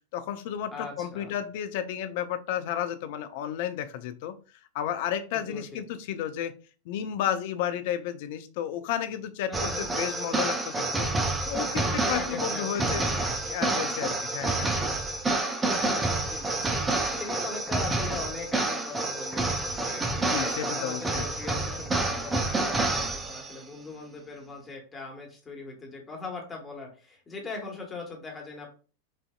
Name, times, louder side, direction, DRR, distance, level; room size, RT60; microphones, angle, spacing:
voice 1, 0.1-4.4 4.7-6.6 6.9-11.1 11.5-13.1 13.4-14.7 20.2-21.3, left 10 dB, 50° left, 10 dB, 0.4 m, -32 dB
voice 2, 0.7-1.3 5.3-5.8 9.5-9.9 11.7-13.5 15.7-28.7, left 3 dB, 15° left, 0 dB, 1.3 m, -40 dB
sound 1, 9.5-23.6, right 2 dB, 15° right, 0.6 m, -28 dB
5.5 x 2.6 x 2.4 m, 0.37 s
figure-of-eight pair, 90°, 0 cm